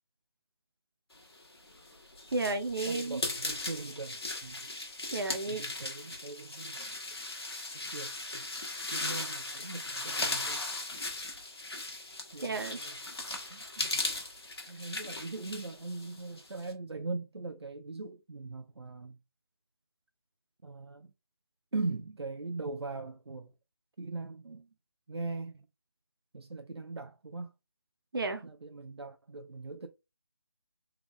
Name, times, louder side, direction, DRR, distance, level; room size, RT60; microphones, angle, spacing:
sound 1, 1.5-16.7, left 2 dB, 70° left, 1.4 m, -38 dB
voice 1, 2.3-3.2 5.1-5.7 12.4-12.8 28.1-28.4, right 3 dB, 60° right, 0.8 m, -32 dB
voice 2, 2.9-4.6 5.5-7.0 7.7-8.5 8.9-10.6 12.3-13.0 13.5-14.0 14.7-19.2 20.6-21.1 21.7-23.5 24.0-24.7 25.1-25.7 26.3-27.5 28.4-29.9, right 3 dB, 80° right, 0.5 m, -40 dB
3.7 x 3.4 x 2.3 m
figure-of-eight pair, 160°, 13 cm